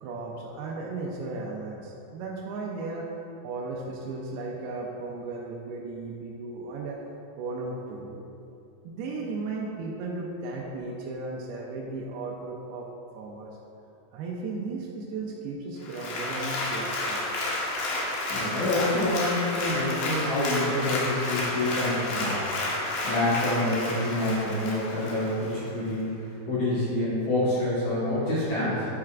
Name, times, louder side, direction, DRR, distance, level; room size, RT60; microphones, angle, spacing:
voice 1, 0.0-3.1 3.4-7.0 7.4-8.3 8.8-12.9 13.1-13.5 14.1-17.2, right 3 dB, 80° right, -3 dB, 2.6 m, -35 dB
Applause, 15.8-25.6 26.0-26.1, left 2 dB, 80° left, 3.2 m, -31 dB
voice 2, 18.3-22.5 23.0-26.1 26.5-28.9, left 1 dB, 60° left, -10 dB, 2.2 m, -27 dB
8.6 x 7.8 x 2.4 m, 2.8 s
omnidirectional pair, 4.6 m